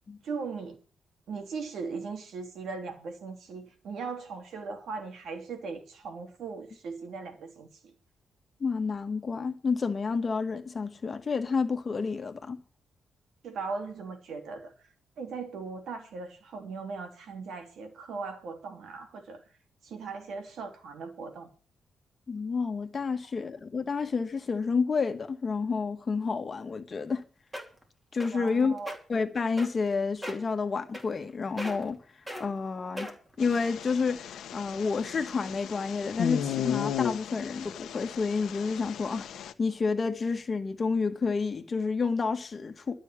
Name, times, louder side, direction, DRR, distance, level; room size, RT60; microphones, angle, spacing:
voice 1, 0.2-0.8 1.3-7.9 13.4-14.7 15.2-19.4 19.8-21.5 28.3-28.9, right 4 dB, 70° right, 3.2 m, -38 dB
voice 2, 8.6-12.6 22.3-27.2 28.1-28.8 29.1-32.0 32.4-33.1 33.4-39.3 39.6-42.9, left 4 dB, 30° left, 1.6 m, -29 dB
sound 1, 27.2-27.3 27.5-27.8 28.2-28.5 28.8-29.0 29.6-29.9 30.2-30.5 30.9-31.3 31.6-31.9 32.3-32.4 33.0-33.3 34.0-34.1, equal, 10° right, 2.8 m, -37 dB
sound 2, 33.4-39.5, left 9 dB, 80° left, 1.0 m, -35 dB
12.5 x 6.4 x 9.6 m
cardioid pair, 150°, 0 cm